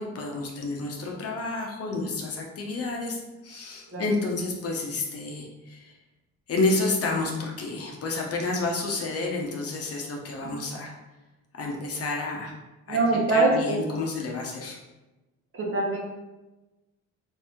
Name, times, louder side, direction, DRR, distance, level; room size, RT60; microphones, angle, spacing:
voice 1, 0.0-3.2 3.4-5.9 6.5-10.9 11.6-12.5 12.9-13.0 13.3-14.8, left 3 dB, 50° left, 0 dB, 0.8 m, -30 dB
voice 2, 12.9-13.8 15.5-16.0, right 2 dB, 45° right, -2 dB, 1.2 m, -23 dB
3.4 x 2.7 x 3.5 m, 1.1 s
cardioid pair, 90°, 30 cm